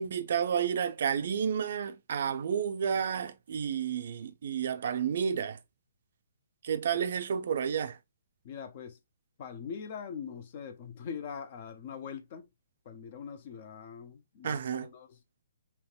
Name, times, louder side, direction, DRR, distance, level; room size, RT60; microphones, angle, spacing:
voice 1, 0.0-5.6 6.6-8.0 14.4-14.9, right 7 dB, 45° right, 0.4 m, -31 dB
voice 2, 8.4-9.0 9.4-12.5 12.9-15.2, left 7 dB, 30° left, 0.5 m, -42 dB
3.5 x 2.9 x 2.2 m
hypercardioid pair, 180°, 0 cm